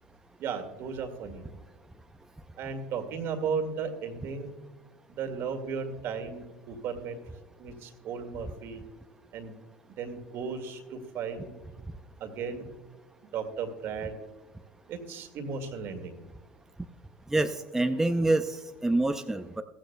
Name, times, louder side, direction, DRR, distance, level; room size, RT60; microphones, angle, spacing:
voice 1, 0.4-1.4 2.6-4.5 5.2-7.2 7.6-8.8 9.3-9.5 10.0-11.5 12.2-12.6 13.3-14.1 14.9-16.2, right 5 dB, 55° right, 6 dB, 1.9 m, -35 dB
voice 2, 17.3-19.6, right 2 dB, 10° right, 7 dB, 0.6 m, -26 dB
15.0 x 14.5 x 2.2 m, 1.2 s
hypercardioid pair, 85°, 5 cm